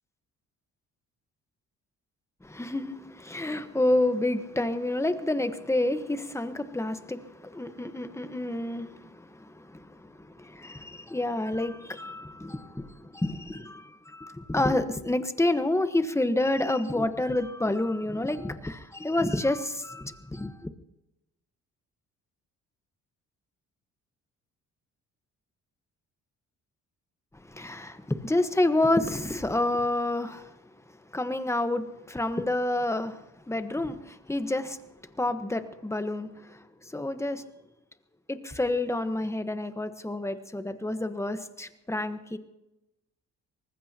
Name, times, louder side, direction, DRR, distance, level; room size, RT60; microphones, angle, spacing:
voice 1, 2.4-20.7 27.5-30.5 31.1-34.8 35.2-37.4 38.3-42.4, left 1 dB, 10° left, 9 dB, 1.2 m, -29 dB
24.0 x 19.5 x 2.9 m, 0.92 s
cardioid pair, 90°, 30 cm